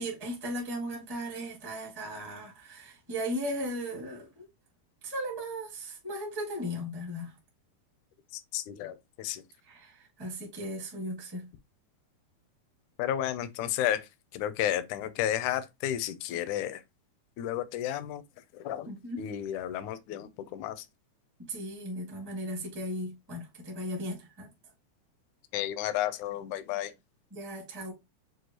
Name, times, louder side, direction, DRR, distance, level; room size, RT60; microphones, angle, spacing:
voice 1, 0.0-4.3 5.0-7.3 9.7-11.5 18.9-19.2 21.5-24.5 27.3-27.9, equal, 25° right, 0.5 m, -36 dB
voice 2, 8.3-9.4 13.0-14.1 14.3-16.8 17.4-18.2 18.5-18.9 19.2-20.8 25.5-26.9, left 11 dB, 80° left, 1.9 m, -32 dB
6.3 x 2.4 x 2.8 m
omnidirectional pair, 3.7 m